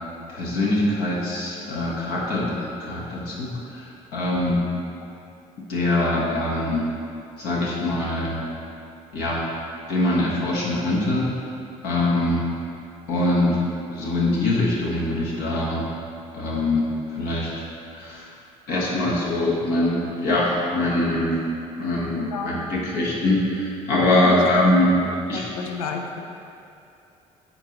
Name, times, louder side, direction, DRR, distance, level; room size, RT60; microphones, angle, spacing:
voice 1, 0.3-3.5 3.7-4.6 5.7-6.8 7.4-8.4 9.1-9.4 9.9-11.3 11.8-12.4 13.1-13.6 13.9-15.9 16.3-16.8 17.1-17.5 17.9-18.3 18.7-21.4 21.8-25.0 25.3-25.5, left 1 dB, 60° left, -5 dB, 1.2 m, -23 dB
voice 2, 22.1-22.6 24.2-24.5 24.8-25.0 25.3-26.2, left 5 dB, 85° left, 4 dB, 0.4 m, -31 dB
8.7 x 4.0 x 2.9 m, 2.6 s
hypercardioid pair, 60°, 18 cm